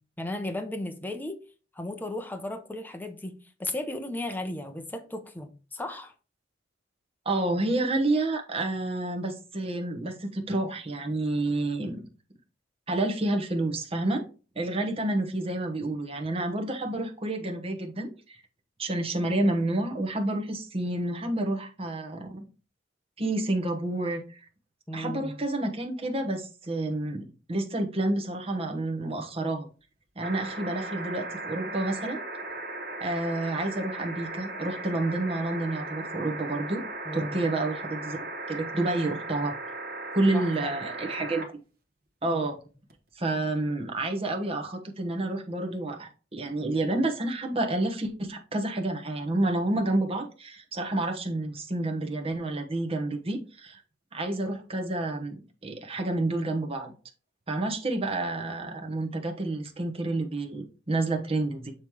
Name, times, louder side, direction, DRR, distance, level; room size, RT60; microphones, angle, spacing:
voice 1, 0.2-1.4 1.7-6.1 24.9-25.3 37.1-37.5 40.3-40.7, left 1 dB, 10° left, 0.6 m, -35 dB
voice 2, 7.2-12.1 12.9-14.2 14.5-18.4 18.8-22.4 23.2-24.4 24.9-27.2 27.5-29.7 30.2-32.2 33.0-36.8 37.1-38.2 38.5-39.5 40.1-41.5 42.2-42.6 43.1-53.8 54.1-56.9 57.5-61.7, right 2 dB, 30° right, 1.1 m, -29 dB
sound 1, 30.2-41.5 42.9-43.0, right 2 dB, 55° right, 1.2 m, -37 dB
7.2 x 3.2 x 4.6 m
head